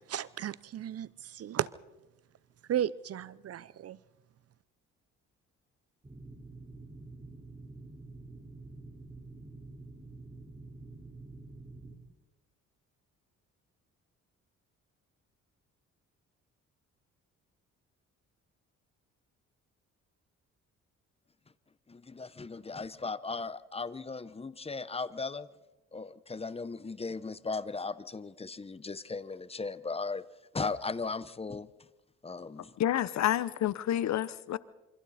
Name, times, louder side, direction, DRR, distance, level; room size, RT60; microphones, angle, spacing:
voice 1, 0.1-1.7 2.7-4.0, right 10 dB, 50° right, 0.7 m, -34 dB
sound 1, 6.0-12.0, right 2 dB, 20° right, 4.1 m, -48 dB
voice 2, 21.9-25.5 25.9-30.2 30.5-31.7 32.2-32.7, left 4 dB, 20° left, 1.0 m, -37 dB
voice 3, 32.8-34.6, left 11 dB, 65° left, 0.9 m, -29 dB
27.5 x 25.0 x 4.3 m
cardioid pair, 90°, 30 cm